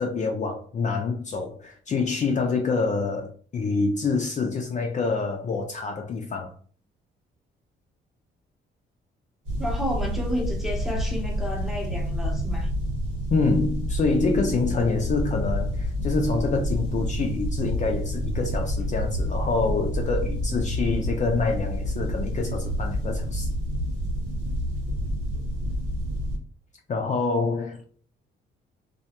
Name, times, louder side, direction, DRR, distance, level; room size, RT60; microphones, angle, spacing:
voice 1, 0.0-6.5 13.3-23.5 26.9-27.8, left 4 dB, 40° left, 0.4 m, -26 dB
sound 1, 9.4-26.4, equal, 90° right, 1.2 m, -28 dB
voice 2, 9.6-12.7, equal, ahead, 0.7 m, -31 dB
2.3 x 2.1 x 2.8 m
cardioid pair, 90°, 20 cm